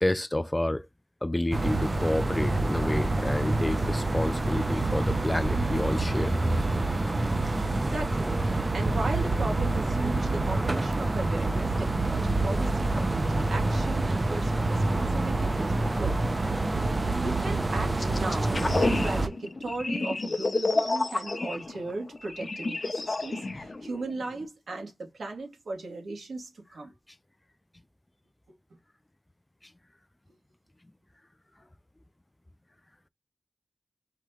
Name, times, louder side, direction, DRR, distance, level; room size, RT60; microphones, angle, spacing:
voice 1, 0.0-0.9 1.2-6.4, left 1 dB, 20° left, 0.3 m, -29 dB
sound 1, 1.5-19.3, right 2 dB, 30° right, 0.7 m, -27 dB
voice 2, 7.4-16.2 17.0-26.9, right 2 dB, 75° right, 2.3 m, -37 dB
sound 2, 18.0-24.4, left 3 dB, 40° left, 0.7 m, -30 dB
4.7 x 3.6 x 3.1 m
cardioid pair, 65°, 0 cm